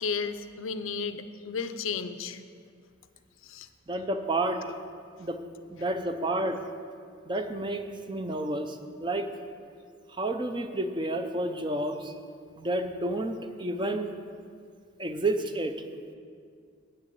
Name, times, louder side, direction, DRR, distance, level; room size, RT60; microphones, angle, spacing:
voice 1, 0.0-2.4 3.4-3.7, left 5 dB, 85° left, 11 dB, 0.5 m, -33 dB
voice 2, 3.9-4.6 5.2-5.4 5.7-6.6 7.3-9.3 10.1-12.1 12.6-14.1 15.0-15.7, right 1 dB, 25° right, 7 dB, 0.5 m, -30 dB
7.9 x 6.8 x 8.4 m, 2.2 s
head